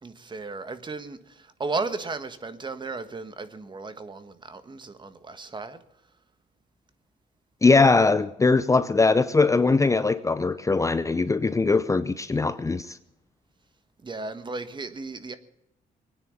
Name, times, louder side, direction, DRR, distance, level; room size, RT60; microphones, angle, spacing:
voice 1, 0.0-5.8 14.0-15.4, right 3 dB, 30° right, 1.5 m, -35 dB
voice 2, 7.6-13.0, left 3 dB, 20° left, 0.6 m, -21 dB
21.0 x 9.7 x 7.1 m
cardioid pair, 100°, 16 cm